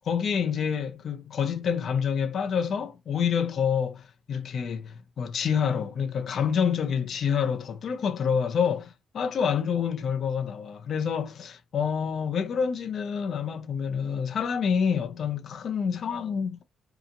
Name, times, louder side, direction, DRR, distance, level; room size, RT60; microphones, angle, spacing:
voice 1, 0.0-16.6, left 7 dB, 55° left, 0.7 m, -27 dB
2.8 x 2.4 x 2.6 m
cardioid pair, 90°, 0 cm